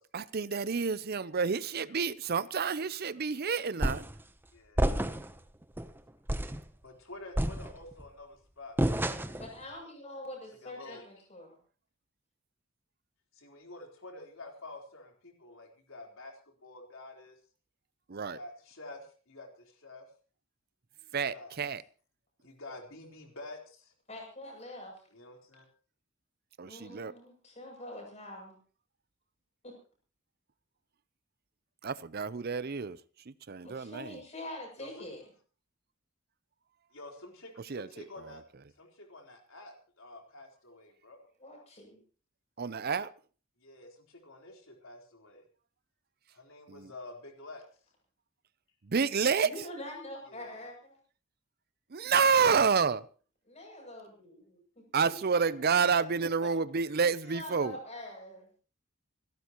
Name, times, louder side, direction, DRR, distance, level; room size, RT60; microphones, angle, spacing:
voice 1, 0.1-4.1 18.1-18.4 21.1-21.8 26.6-27.1 31.8-33.0 33.3-34.2 37.7-37.9 42.6-43.1 46.7-46.9 48.8-49.5 51.9-53.0 54.9-57.8, right 5 dB, 50° right, 0.6 m, -29 dB
sound 1, 3.8-4.2 4.8-5.4 5.8-5.9 6.3-6.6 7.4-8.0 8.8-9.5, right 1 dB, 10° right, 0.8 m, -29 dB
voice 2, 4.5-5.0 6.8-9.5 10.6-11.1 13.3-16.3 16.6-17.4 18.3-20.1 21.3-21.6 22.4-23.9 25.1-25.6 34.8-35.1 36.9-38.4 38.8-41.3 43.6-45.4 46.3-47.6 50.3-50.6, left 2 dB, 75° left, 4.0 m, -49 dB
voice 3, 9.4-11.6 24.1-25.0 26.6-28.6 29.6-29.7 33.6-35.2 41.4-42.0 49.4-51.0 53.5-55.2 55.6-55.7 57.0-58.5, left 1 dB, 35° left, 7.6 m, -45 dB
28.0 x 13.0 x 3.0 m
head